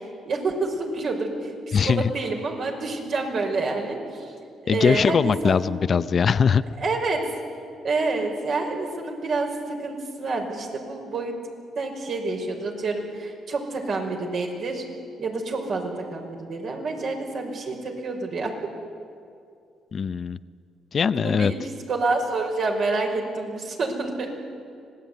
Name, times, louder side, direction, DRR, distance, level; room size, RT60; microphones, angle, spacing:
voice 1, 0.2-1.5 1.8-4.3 4.6-5.6 6.8-7.2 7.8-11.4 11.8-14.8 15.2-18.5 21.1-24.3, right 3 dB, 60° right, 2 dB, 5.6 m, -28 dB
voice 2, 1.7-2.1 4.7-6.6 19.9-20.4 20.9-21.5, left 6 dB, 45° left, 14 dB, 0.6 m, -21 dB
25.5 x 19.0 x 9.5 m, 2.4 s
cardioid pair, 90°, 0 cm